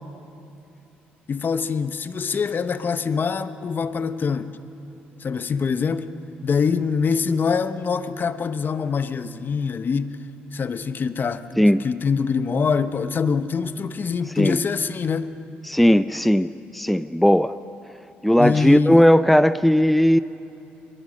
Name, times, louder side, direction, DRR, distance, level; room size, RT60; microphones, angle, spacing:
voice 1, 1.3-4.5 5.2-6.1 6.4-10.2 10.5-15.3 18.4-19.0, left 5 dB, 45° left, 12 dB, 0.9 m, -24 dB
voice 2, 15.7-17.6 18.2-20.2, equal, ahead, 14 dB, 0.4 m, -17 dB
23.0 x 20.0 x 6.5 m, 2.8 s
hypercardioid pair, 55°, 5 cm